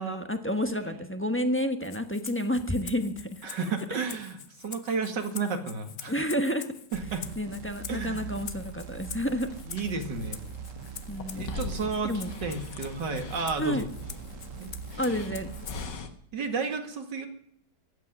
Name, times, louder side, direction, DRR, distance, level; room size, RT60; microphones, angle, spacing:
voice 1, 0.0-3.4 6.1-6.7 7.4-9.5 11.1-11.5 12.0-12.3 13.6-13.8 15.0-15.5, equal, 10° left, 7 dB, 1.0 m, -30 dB
Rattle (instrument), 1.8-16.0, left 7 dB, 45° left, 0.8 m, -46 dB
voice 2, 3.4-6.1 6.9-7.3 7.9-8.3 9.7-10.4 11.4-13.9 14.6-15.0 16.3-17.3, right 4 dB, 75° right, 6 dB, 2.6 m, -32 dB
sound 1, 6.9-15.8, right 7 dB, 55° right, 1.0 m, -42 dB
sound 2, 9.5-16.1, left 4 dB, 75° left, 2.1 m, -42 dB
15.5 x 8.6 x 9.8 m, 0.68 s
omnidirectional pair, 1.9 m